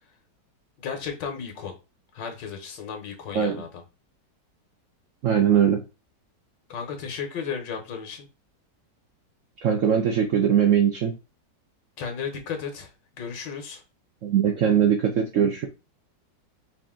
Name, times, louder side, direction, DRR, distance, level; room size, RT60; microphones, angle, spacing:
voice 1, 0.8-1.8 2.1-3.8 6.7-8.3 12.0-13.8, left 6 dB, 80° left, 4 dB, 1.6 m, -34 dB
voice 2, 5.2-5.8 9.6-11.1 14.2-15.7, right 8 dB, 65° right, 3 dB, 0.7 m, -21 dB
5.0 x 2.5 x 3.6 m, 0.29 s
omnidirectional pair, 1.9 m